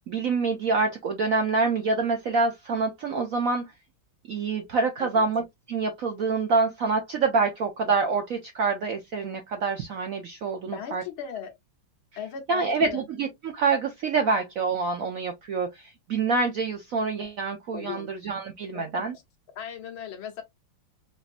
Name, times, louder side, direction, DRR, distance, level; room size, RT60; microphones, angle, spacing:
voice 1, 0.1-3.7 4.3-5.4 5.7-11.0 12.5-19.1, right 4 dB, 65° right, 0.8 m, -26 dB
voice 2, 10.7-11.5 12.2-13.1 17.7-18.1 18.7-19.0 19.6-20.4, left 8 dB, 80° left, 1.9 m, -37 dB
5.0 x 2.7 x 2.5 m
omnidirectional pair, 2.2 m